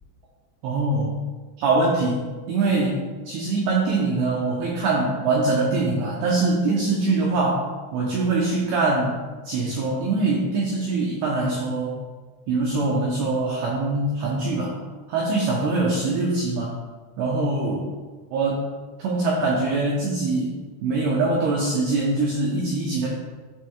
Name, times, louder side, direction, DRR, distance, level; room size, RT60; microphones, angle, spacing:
voice 1, 0.6-1.2 1.6-3.0 3.3-7.6 7.9-9.2 9.4-12.0 12.5-14.8 15.1-16.7 17.2-17.9 18.3-18.7 19.0-20.5 20.8-23.1, right 3 dB, 90° right, -4 dB, 2.3 m, -23 dB
13.0 x 4.6 x 2.4 m, 1.3 s
omnidirectional pair, 5.8 m